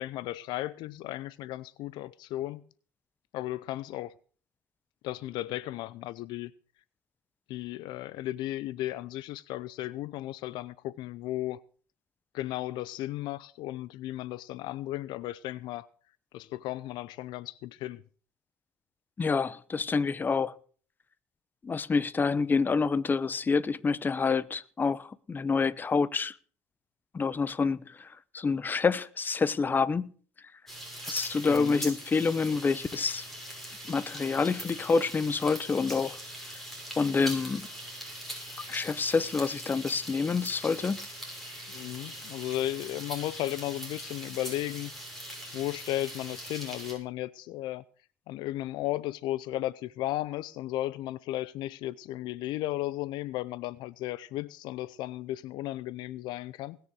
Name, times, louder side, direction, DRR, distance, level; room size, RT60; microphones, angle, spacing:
voice 1, 0.0-2.6 3.3-4.1 5.0-6.5 7.5-11.6 12.3-15.9 16.3-18.0 31.5-31.9 41.7-44.9 45.5-47.8 48.3-56.8, left 15 dB, 65° left, 0.6 m, -35 dB
voice 2, 19.2-20.5 21.6-26.3 27.1-28.1 28.3-30.1 31.1-33.2 33.9-36.2 37.0-37.7 38.7-41.0, left 4 dB, 25° left, 0.8 m, -27 dB
sound 1, 30.7-46.9, equal, 5° left, 6.6 m, -41 dB
20.0 x 6.9 x 6.3 m
supercardioid pair, 90°, 8 cm